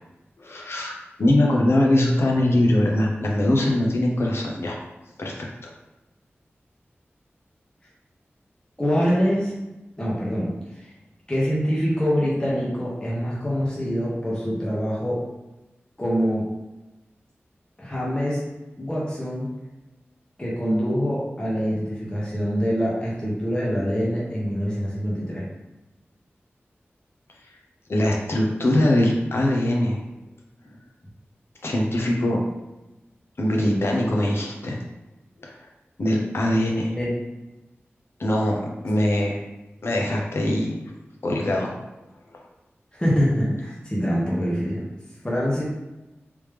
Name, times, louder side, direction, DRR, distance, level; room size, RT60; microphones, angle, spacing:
voice 1, 0.4-4.8 5.2-5.7 27.9-30.0 31.6-32.4 33.4-34.8 35.4-35.5 36.0-36.9 38.2-39.4 39.8-40.7 41.2-41.7, left 1 dB, 65° left, -1 dB, 0.8 m, -22 dB
voice 2, 8.8-9.5 10.0-10.5 10.8-10.9 11.3-15.2 16.0-16.5 17.8-18.4 18.8-19.5 20.4-25.4 37.0-37.1 42.9-44.8 45.2-45.6, equal, 20° left, -6 dB, 1.1 m, -24 dB
3.4 x 3.1 x 3.3 m, 1.0 s
wide cardioid pair, 60°, 4 cm